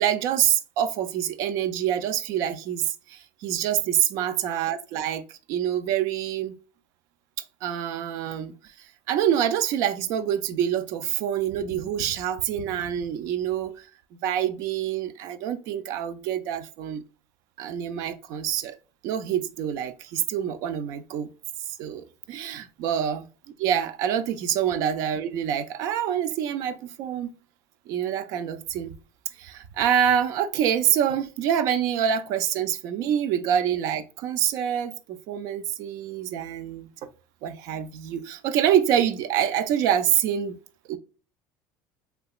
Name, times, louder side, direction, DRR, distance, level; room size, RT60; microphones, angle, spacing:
voice 1, 0.0-6.5 7.6-13.9 14.1-17.0 17.6-18.8 19.0-21.3 21.8-23.2 23.6-27.3 27.9-28.9 29.4-37.1 37.4-40.6 40.9-41.0, right 9 dB, 50° right, 0.4 m, -26 dB
3.3 x 2.8 x 2.3 m
cardioid pair, 175°, 7 cm